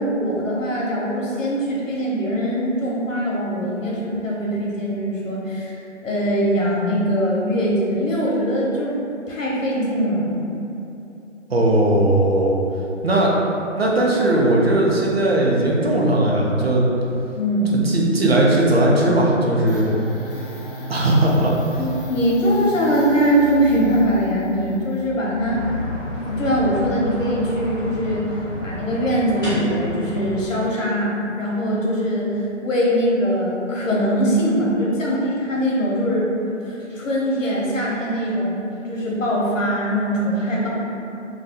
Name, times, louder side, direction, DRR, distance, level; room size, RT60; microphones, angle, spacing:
voice 1, 0.0-5.8 6.0-9.0 9.3-10.5 17.3-17.9 21.8-25.6 26.3-28.2 28.6-36.3 36.6-38.6 38.9-40.7, equal, 80° left, -5 dB, 1.0 m, -22 dB
voice 2, 11.5-12.5 13.0-13.4 13.8-16.8 17.7-19.9 20.9-21.6, right 1 dB, 55° right, -3 dB, 0.5 m, -18 dB
sound 1, 19.7-28.1, left 1 dB, 45° left, 0.5 m, -35 dB
sound 2, 25.4-30.4, equal, ahead, 1.4 m, -31 dB
2.7 x 2.3 x 3.4 m, 2.8 s
hypercardioid pair, 180°, 38 cm